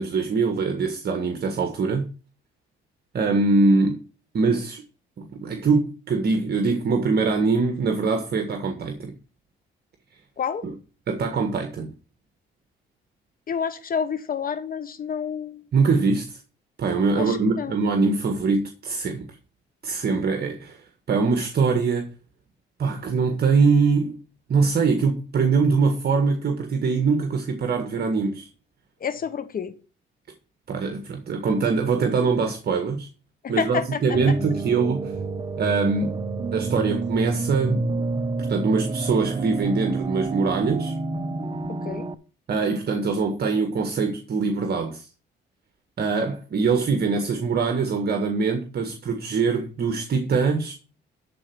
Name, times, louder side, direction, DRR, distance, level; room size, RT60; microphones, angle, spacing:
voice 1, 0.0-2.1 3.1-4.0 4.3-4.8 5.2-9.1 10.6-10.7 11.1-11.9 15.7-16.4 16.8-19.3 19.8-22.1 22.8-24.2 24.5-28.5 30.7-33.1 33.5-35.1 35.6-36.2 36.5-38.0 38.5-41.0 42.5-45.1 46.0-50.7, right 4 dB, 55° right, 1.7 m, -23 dB
voice 2, 13.5-15.7 17.1-17.7 29.0-29.7 33.4-34.3 41.7-42.1, left 7 dB, 45° left, 1.1 m, -29 dB
sound 1, 34.1-42.1, right 3 dB, 25° right, 0.8 m, -29 dB
12.5 x 4.4 x 6.1 m
cardioid pair, 90°, 20 cm